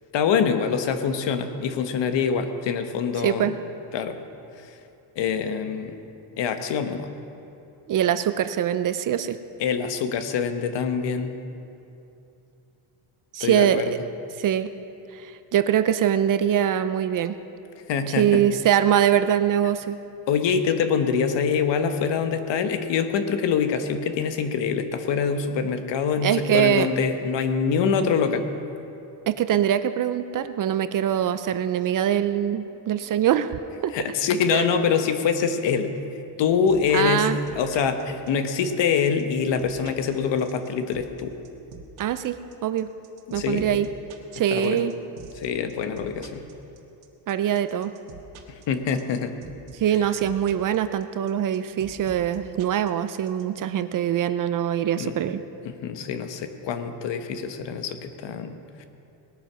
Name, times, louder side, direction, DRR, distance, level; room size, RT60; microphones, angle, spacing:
voice 1, 0.1-3.5 3.9-4.2 4.6-4.7 5.2-6.0 6.4-7.1 9.6-11.3 13.4-13.9 17.9-18.4 20.3-28.5 33.9-35.9 36.4-41.3 43.3-43.8 44.5-44.8 45.4-46.4 48.5-49.4 55.0-55.2 55.6-58.8, left 6 dB, 60° left, 8 dB, 1.2 m, -25 dB
voice 2, 3.2-3.5 7.9-9.4 13.3-13.8 14.4-14.7 15.1-17.4 18.1-20.0 26.2-26.9 29.3-33.9 34.5-34.7 36.9-37.4 42.0-42.9 43.3-43.9 44.3-44.9 47.3-47.9 49.7-55.4, right 10 dB, 45° right, 12 dB, 0.5 m, -23 dB
sound 1, 36.7-53.4, right 6 dB, 85° right, 1.6 m, -45 dB
19.0 x 9.1 x 6.1 m, 2.8 s
cardioid pair, 145°, 48 cm